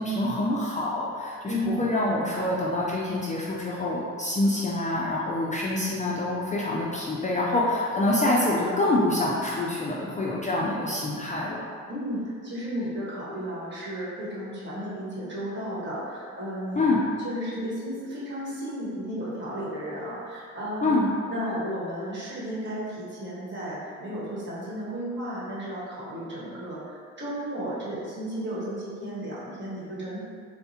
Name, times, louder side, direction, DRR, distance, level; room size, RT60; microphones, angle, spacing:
voice 1, 0.0-11.6 16.7-17.1 20.8-21.1, left 2 dB, 25° left, -5 dB, 0.4 m, -26 dB
voice 2, 1.4-1.9 11.9-16.9 17.2-20.9 21.3-30.2, equal, 35° right, -8 dB, 1.4 m, -33 dB
4.5 x 2.1 x 2.8 m, 2.1 s
cardioid pair, 90°, 30 cm